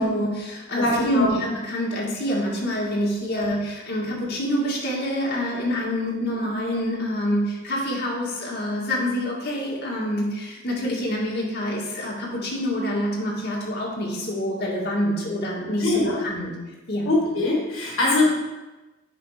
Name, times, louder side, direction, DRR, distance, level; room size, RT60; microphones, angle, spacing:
voice 1, 0.0-16.5 16.9-17.1, equal, 55° left, -4 dB, 1.8 m, -26 dB
voice 2, 0.8-1.3 3.3-3.5 15.8-16.2 17.0-18.3, left 2 dB, 75° left, -3 dB, 1.4 m, -22 dB
9.2 x 3.4 x 5.0 m, 1.1 s
head